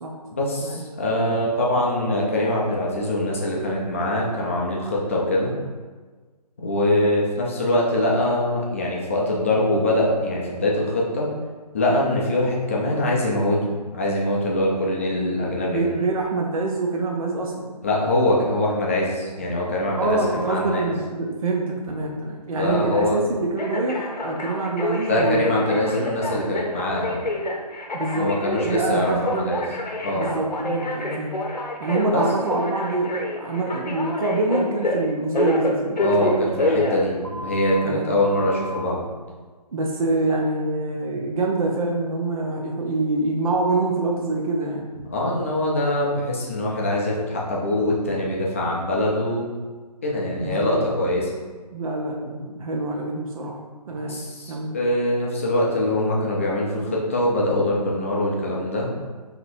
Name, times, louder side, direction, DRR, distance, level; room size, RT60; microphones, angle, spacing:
voice 1, 0.3-5.6 6.6-11.3 11.7-13.6 13.9-15.9 17.8-20.9 22.6-23.2 25.1-27.3 28.1-29.6 30.0-30.3 32.1-32.2 36.0-39.0 45.1-49.5 50.0-51.3 53.9-58.9, left 1 dB, 20° left, -4 dB, 0.4 m, -23 dB
voice 2, 15.7-17.8 19.9-25.8 27.9-28.3 28.6-29.5 30.1-31.4 31.8-36.3 37.8-38.2 39.7-44.9 50.4-50.8 51.7-53.6 53.9-54.2 54.5-54.8, right 2 dB, 55° right, 0 dB, 0.5 m, -25 dB
Telephone, 20.2-20.8 23.6-37.8 38.2-38.8, left 1 dB, 90° left, 0.8 m, -27 dB
5.1 x 2.9 x 2.6 m, 1.4 s
figure-of-eight pair, 155°, 21 cm